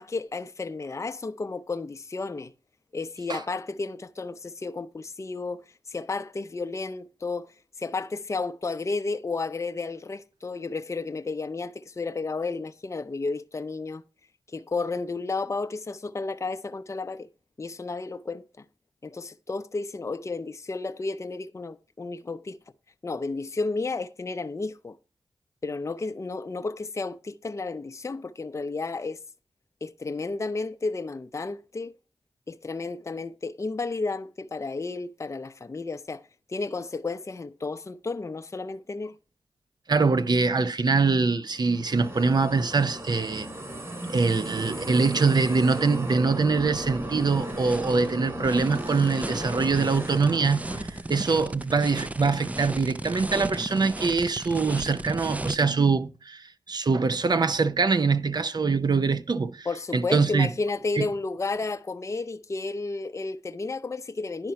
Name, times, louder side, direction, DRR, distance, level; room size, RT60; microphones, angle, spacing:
voice 1, 0.0-2.5 2.9-7.5 7.8-14.0 14.5-17.3 17.6-18.4 19.0-22.6 23.0-25.0 25.6-29.2 29.8-31.9 32.5-36.2 36.5-39.1 59.7-64.5, left 3 dB, 35° left, 0.5 m, -32 dB
voice 2, 39.9-43.5 44.1-59.7 59.9-60.5 61.0-61.1, right 4 dB, 55° right, 0.7 m, -24 dB
sound 1, 41.5-51.2, right 1 dB, 35° right, 4.2 m, -36 dB
sound 2, 46.5-55.6, right 1 dB, 15° right, 0.4 m, -36 dB
10.5 x 4.4 x 5.8 m
cardioid pair, 50°, 9 cm